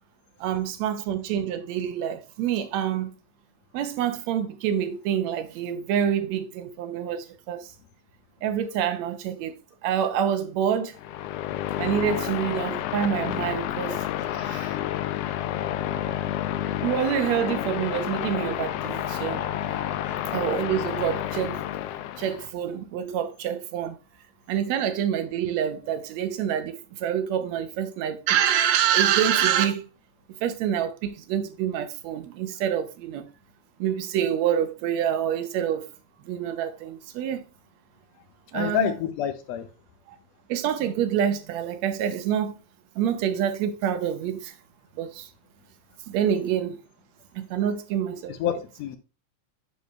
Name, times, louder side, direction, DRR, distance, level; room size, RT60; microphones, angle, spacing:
voice 1, 0.4-3.1 3.7-7.7 8.4-9.6 9.8-11.0 11.8-14.0 14.3-14.8 16.0-16.1 16.8-19.4 20.3-21.6 22.2-24.0 24.5-29.9 30.4-33.3 33.8-35.9 36.2-37.4 38.5-38.9 40.1-40.2 40.5-42.6 43.0-44.5 45.0-45.3 46.1-46.8 47.3-48.5, right 9 dB, 70° right, 2.0 m, -27 dB
sound 1, 10.9-22.5, left 12 dB, 85° left, 1.4 m, -30 dB
voice 2, 38.5-39.7 48.4-48.5 48.8-49.0, left 10 dB, 70° left, 1.9 m, -27 dB
10.5 x 4.3 x 3.1 m
omnidirectional pair, 3.4 m